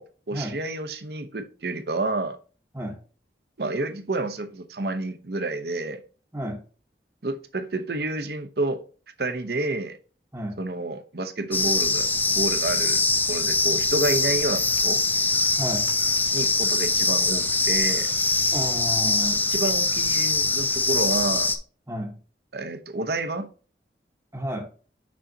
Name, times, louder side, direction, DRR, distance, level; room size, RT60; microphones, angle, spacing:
voice 1, 0.0-2.4 3.6-6.0 7.2-8.8 9.2-10.0 10.6-13.0 13.3-15.0 16.3-18.1 19.5-21.5 22.5-23.5, right 2 dB, 65° right, 0.8 m, -29 dB
sound 1, 11.5-21.6, left 3 dB, 10° left, 0.5 m, -23 dB
voice 2, 15.6-15.9 18.5-19.4 21.9-22.2 24.3-24.7, equal, 15° right, 1.1 m, -31 dB
6.3 x 5.6 x 2.7 m
head